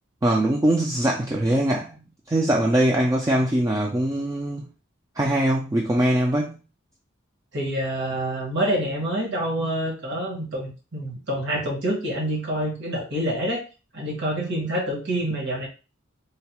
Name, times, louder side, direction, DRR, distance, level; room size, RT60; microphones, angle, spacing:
voice 1, 0.2-4.7 5.2-6.6, right 1 dB, 15° right, 0.4 m, -22 dB
voice 2, 7.5-13.6 13.9-15.7, right 1 dB, 65° right, 1.5 m, -27 dB
3.8 x 2.1 x 2.9 m
head